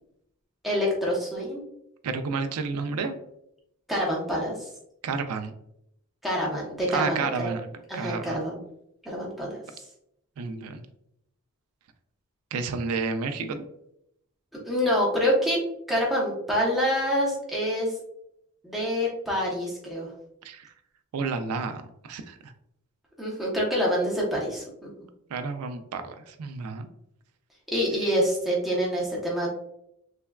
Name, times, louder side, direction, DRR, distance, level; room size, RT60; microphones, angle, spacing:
voice 1, 0.6-1.6 3.9-4.7 6.2-7.5 7.9-8.6 9.0-9.6 14.5-17.9 18.6-20.1 23.2-24.9 27.7-29.5, equal, ahead, -5 dB, 0.6 m, -26 dB
voice 2, 2.0-3.2 5.0-5.5 6.9-8.4 10.4-10.8 12.5-13.6 20.4-20.7 21.1-22.5 25.3-26.9, right 4 dB, 85° right, 8 dB, 0.4 m, -31 dB
3.3 x 2.2 x 2.2 m, 0.77 s
head